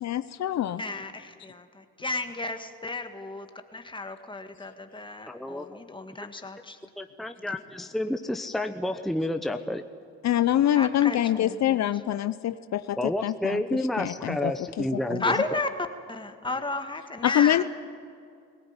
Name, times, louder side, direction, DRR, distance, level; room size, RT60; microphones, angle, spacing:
voice 1, 0.0-0.8 10.2-15.4 17.2-17.6, left 12 dB, 65° left, 13 dB, 0.7 m, -25 dB
voice 2, 0.8-1.7 2.0-3.5 3.7-6.8 10.7-11.8 15.2-15.7 16.1-17.6, left 3 dB, 15° left, 7 dB, 1.8 m, -33 dB
voice 3, 5.3-5.8 7.0-9.8 13.0-15.3, left 1 dB, ahead, 6 dB, 0.9 m, -30 dB
20.0 x 17.5 x 9.7 m, 2.4 s
cardioid pair, 90°, 30 cm